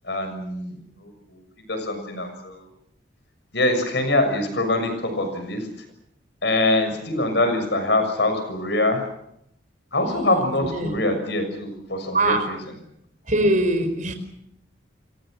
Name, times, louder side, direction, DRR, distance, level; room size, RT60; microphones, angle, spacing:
voice 1, 0.0-1.4 1.7-2.6 3.5-5.7 6.4-9.1 9.9-12.6, left 2 dB, 60° left, 7 dB, 6.5 m, -24 dB
voice 2, 10.0-11.0 12.1-12.4 13.3-14.1, right 2 dB, 40° right, 8 dB, 4.6 m, -23 dB
28.5 x 23.5 x 6.5 m, 0.76 s
head